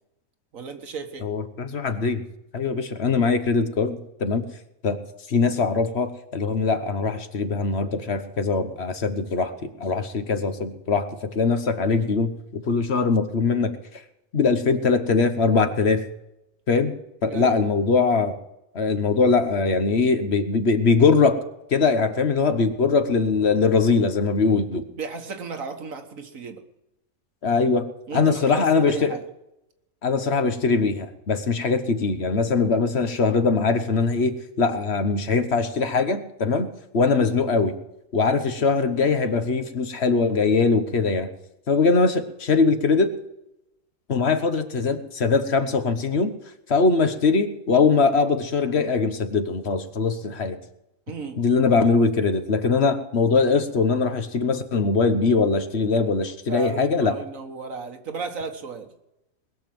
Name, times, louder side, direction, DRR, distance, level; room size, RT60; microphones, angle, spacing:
voice 1, 0.5-1.3 17.3-17.5 24.9-26.6 28.1-29.2 51.1-51.4 56.5-58.9, right 4 dB, 75° right, 6 dB, 1.8 m, -34 dB
voice 2, 1.2-2.2 2.5-4.4 4.8-5.0 5.3-13.7 14.3-16.0 16.7-16.9 17.2-18.4 18.7-21.4 21.7-24.8 27.4-27.8 28.1-29.2 30.0-36.7 36.9-37.7 38.1-41.3 41.7-43.1 44.1-46.3 46.7-50.6 51.4-57.1, left 4 dB, 55° left, 9 dB, 1.3 m, -21 dB
20.5 x 7.1 x 7.7 m, 0.87 s
omnidirectional pair, 1.4 m